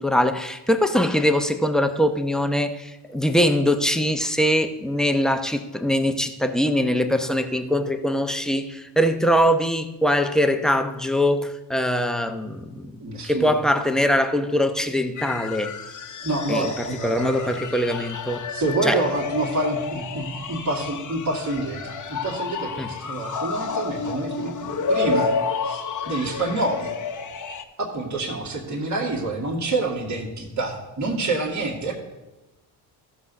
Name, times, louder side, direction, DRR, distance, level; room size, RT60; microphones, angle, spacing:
voice 1, 0.0-15.7 16.5-18.5 18.8-19.0 22.8-22.9, equal, ahead, 0.8 m, -22 dB
voice 2, 13.0-13.6 16.2-17.5 18.5-25.4 25.6-26.9 27.8-31.9, right 2 dB, 35° right, 2.1 m, -27 dB
sound 1, 15.2-27.6, left 5 dB, 40° left, 1.0 m, -30 dB
14.0 x 6.4 x 4.0 m
supercardioid pair, 75°, 48 cm